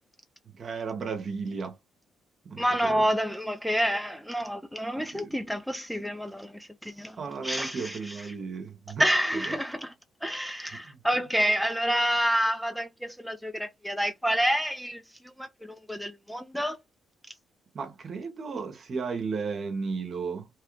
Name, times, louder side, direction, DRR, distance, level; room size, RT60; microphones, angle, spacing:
voice 1, 0.5-1.8 2.4-3.1 5.1-5.3 7.2-9.0 9.3-9.4 10.7-11.0 17.7-20.5, right 5 dB, 50° right, 1.0 m, -34 dB
voice 2, 2.6-7.2 7.4-8.3 9.0-9.9 10.2-16.8, equal, ahead, 0.4 m, -28 dB
3.1 x 2.3 x 3.2 m
cardioid pair, 95°, 0 cm